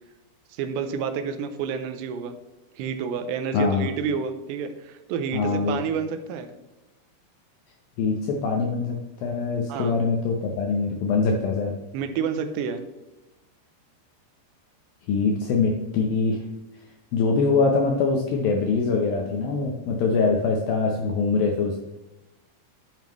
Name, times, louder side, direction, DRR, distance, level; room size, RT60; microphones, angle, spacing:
voice 1, 0.5-2.3 2.8-6.5 9.7-10.0 11.9-12.8, right 6 dB, 85° right, 8 dB, 2.8 m, -29 dB
voice 2, 3.5-3.9 5.3-5.8 8.0-11.7 15.1-16.4 17.1-21.8, left 4 dB, 80° left, 1 dB, 2.1 m, -23 dB
11.5 x 7.1 x 3.0 m, 1.0 s
omnidirectional pair, 5.1 m